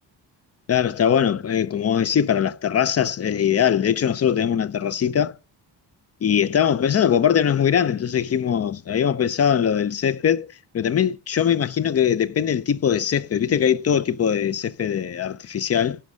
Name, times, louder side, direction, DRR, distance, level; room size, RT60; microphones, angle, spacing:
voice 1, 0.7-5.4 6.2-10.5 10.7-16.0, left 8 dB, 35° left, 0.4 m, -21 dB
10.5 x 5.2 x 6.2 m
wide cardioid pair, 170°, 43 cm